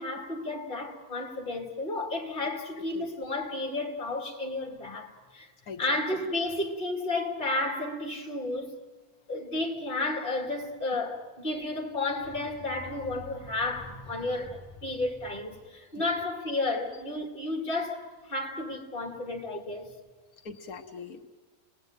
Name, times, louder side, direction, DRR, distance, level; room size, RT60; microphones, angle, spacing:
voice 1, 0.0-5.5 5.8-8.8 9.3-19.9, left 2 dB, 35° left, 3.0 m, -32 dB
voice 2, 5.7-6.0 16.0-16.1 20.4-21.3, left 5 dB, 90° left, 1.7 m, -41 dB
29.5 x 20.0 x 9.2 m
omnidirectional pair, 1.5 m